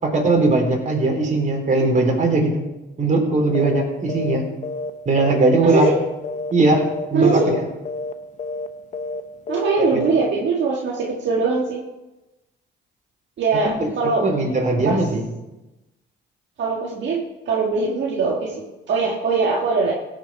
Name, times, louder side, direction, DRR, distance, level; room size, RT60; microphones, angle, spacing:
voice 1, 0.0-2.6 3.0-4.4 5.1-5.9 6.5-6.8 7.1-7.6 9.9-10.1 13.6-13.9 14.2-15.2, right 2 dB, 40° right, 1 dB, 3.6 m, -19 dB
sound 1, 3.5-3.8 4.1-4.4 4.6-6.0 6.2-6.5 6.8-7.1 7.3-7.6 7.9-8.1 8.4-8.7 8.9-9.2 9.5-9.7 10.0-10.3, left 3 dB, 40° left, 1.0 m, -29 dB
voice 2, 5.6-6.0 7.1-7.5 9.5-11.8 13.4-14.3 14.8-15.0 16.6-19.9, right 4 dB, 65° right, -2 dB, 1.8 m, -21 dB
17.0 x 6.7 x 4.7 m, 1.0 s
cardioid pair, 90°, 20 cm